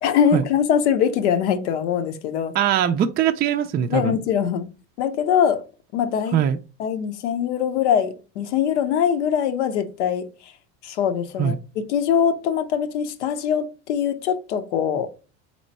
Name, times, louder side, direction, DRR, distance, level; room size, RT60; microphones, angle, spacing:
voice 1, 0.0-2.6 3.9-4.7 5.0-5.6 5.9-6.4 6.8-10.5 10.8-11.6 11.9-15.1, left 8 dB, 85° left, 0.8 m, -22 dB
voice 2, 2.5-4.2 6.3-6.6 11.4-11.6, right 9 dB, 30° right, 0.4 m, -21 dB
4.3 x 3.0 x 4.1 m
supercardioid pair, 100°, 34 cm